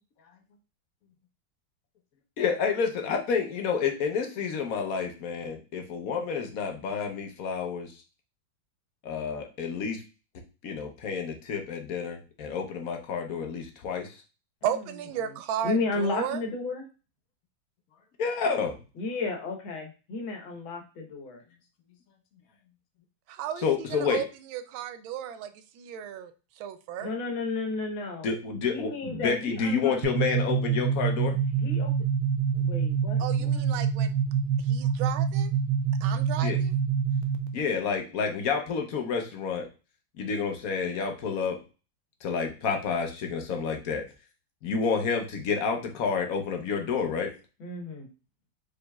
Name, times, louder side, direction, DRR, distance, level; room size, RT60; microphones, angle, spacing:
voice 1, 2.4-7.9 9.0-10.0 10.6-14.2 18.2-18.8 23.6-24.2 28.2-31.4 36.4-36.6 37.5-39.7 40.2-41.6 42.2-44.0 44.6-47.3, left 5 dB, 60° left, 4 dB, 1.0 m, -29 dB
voice 2, 14.6-16.4 23.3-23.6 23.9-27.1 33.2-34.1 34.7-35.5 36.0-36.8, right 9 dB, 85° right, 10 dB, 1.4 m, -34 dB
voice 3, 15.6-16.8 19.0-21.4 27.0-28.3 28.7-30.0 31.5-31.9 32.5-33.8 47.6-48.1, left 3 dB, 80° left, 3 dB, 1.8 m, -33 dB
sound 1, 30.0-37.6, right 7 dB, 70° right, 0.9 m, -26 dB
4.9 x 3.9 x 2.3 m, 0.33 s
omnidirectional pair, 2.1 m